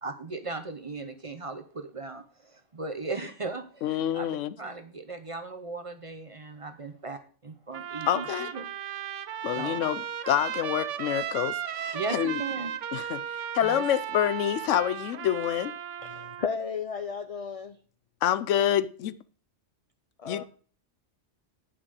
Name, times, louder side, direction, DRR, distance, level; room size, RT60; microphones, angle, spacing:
voice 1, 0.0-8.2 8.5-8.6 9.5-9.8 11.9-12.8 13.6-13.8, right 3 dB, 30° right, 0.8 m, -37 dB
voice 2, 3.8-4.5 8.1-8.5 9.4-12.4 12.9-13.2 13.5-15.7 18.2-19.2 20.3-20.4, left 11 dB, 90° left, 1.0 m, -27 dB
Trumpet, 7.7-16.5, right 9 dB, 80° right, 1.0 m, -35 dB
voice 3, 16.0-17.8 20.2-20.4, left 6 dB, 45° left, 0.4 m, -34 dB
9.7 x 5.8 x 6.4 m
omnidirectional pair, 1.2 m